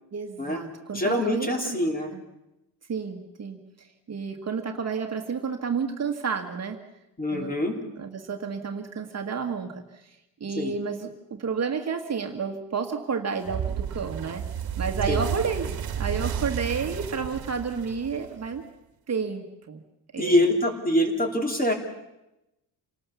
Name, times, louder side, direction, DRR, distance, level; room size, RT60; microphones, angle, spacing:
voice 1, 0.1-1.8 2.1-2.2 2.9-6.8 7.3-7.5 8.0-14.5 14.8-18.6 19.1-19.8 20.1-20.5, right 5 dB, 35° right, 4 dB, 1.6 m, -31 dB
voice 2, 0.9-2.1 7.2-7.7 10.6-10.7 15.1-15.2 20.2-21.7, left 1 dB, 20° left, 3 dB, 3.0 m, -24 dB
sound 1, 13.5-18.6, right 8 dB, 55° right, 1.7 m, -31 dB
27.5 x 19.0 x 7.0 m, 0.94 s
cardioid pair, 160°, 42 cm